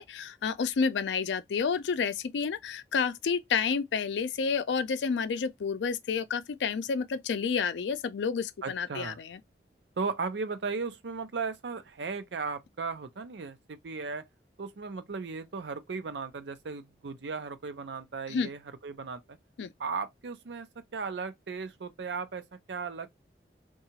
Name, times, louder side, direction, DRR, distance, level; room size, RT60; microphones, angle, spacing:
voice 1, 0.0-9.4 18.3-18.5 19.6-19.7, left 5 dB, 85° left, 0.4 m, -30 dB
voice 2, 8.6-9.2 10.0-14.3 14.6-19.4 19.8-20.7 20.9-23.1, right 4 dB, 80° right, 0.5 m, -36 dB
2.7 x 2.3 x 2.7 m
head